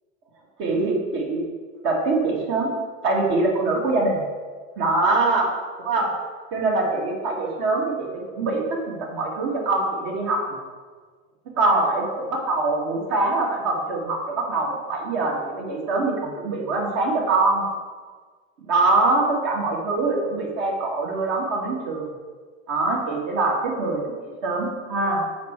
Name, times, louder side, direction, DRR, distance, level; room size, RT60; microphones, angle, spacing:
voice 1, 0.6-1.4 1.8-2.7 3.0-4.2 4.8-5.5 5.8-6.1 6.5-10.6 11.6-17.6 18.7-22.1 22.7-25.2, right 2 dB, 55° right, -1 dB, 1.8 m, -23 dB
7.0 x 4.5 x 4.5 m, 1.5 s
supercardioid pair, 115°, 41 cm